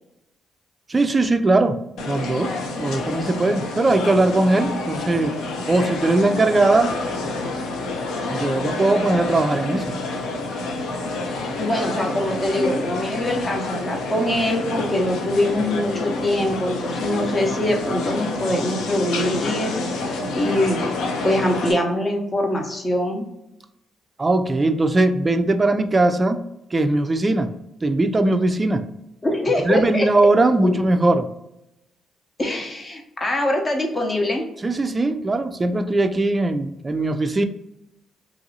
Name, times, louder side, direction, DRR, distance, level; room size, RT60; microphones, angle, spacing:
voice 1, 0.9-2.5 2.8-5.3 5.7-6.9 8.3-9.9 24.2-26.4 26.7-27.5 27.8-28.8 29.6-31.3 34.6-37.4, right 2 dB, 25° right, 8 dB, 0.3 m, -20 dB
sound 1, 2.0-21.7, left 2 dB, 80° left, 0.5 m, -28 dB
voice 2, 11.6-19.7 20.3-20.8 21.2-23.3 29.2-30.1 30.6-30.7 32.4-34.5, left 1 dB, 30° left, 2 dB, 0.7 m, -23 dB
2.9 x 2.6 x 2.7 m, 0.87 s
cardioid pair, 90°, 0 cm